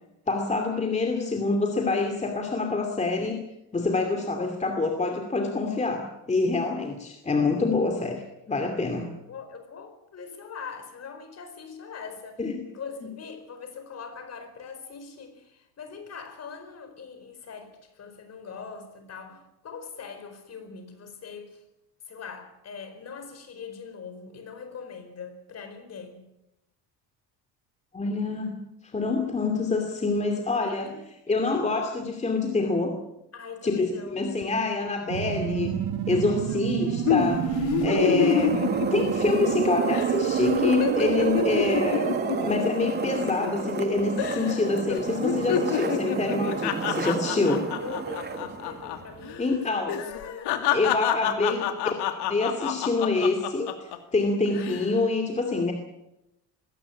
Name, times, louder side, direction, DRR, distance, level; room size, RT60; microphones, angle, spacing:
voice 1, 0.3-3.4 3.7-9.1 12.4-12.7 27.9-28.6 28.9-30.9 31.3-32.9 33.6-35.7 36.1-38.6 38.9-42.1 42.4-47.6 49.4-50.0 50.7-51.7 52.1-55.7, left 3 dB, 15° left, 3 dB, 2.6 m, -26 dB
voice 2, 9.2-12.4 12.7-21.6 22.1-26.3 30.8-31.0 33.3-34.2 36.1-36.6 47.5-50.8 51.3-51.8, left 6 dB, 40° left, 8 dB, 4.8 m, -42 dB
sound 1, 35.1-42.5, right 10 dB, 60° right, 1.9 m, -28 dB
sound 2, 37.1-39.6 39.9-40.1 40.4-43.9 44.2-44.6 44.9-49.0 49.2-49.4 49.9-54.0 54.5-54.9, left 10 dB, 75° left, 2.7 m, -28 dB
sound 3, 37.8-49.4, right 5 dB, 25° right, 1.8 m, -32 dB
20.5 x 17.0 x 8.6 m, 0.89 s
cardioid pair, 140°, 41 cm